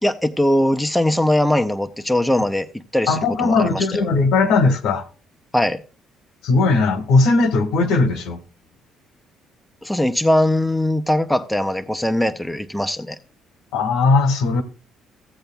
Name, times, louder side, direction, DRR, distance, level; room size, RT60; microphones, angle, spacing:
voice 1, 0.0-3.8 5.5-5.8 9.8-13.2, left 1 dB, ahead, 0.5 m, -20 dB
voice 2, 3.1-5.0 6.4-8.4 13.7-14.6, left 3 dB, 90° left, 1.3 m, -18 dB
15.5 x 7.9 x 2.2 m
cardioid pair, 170°, 0 cm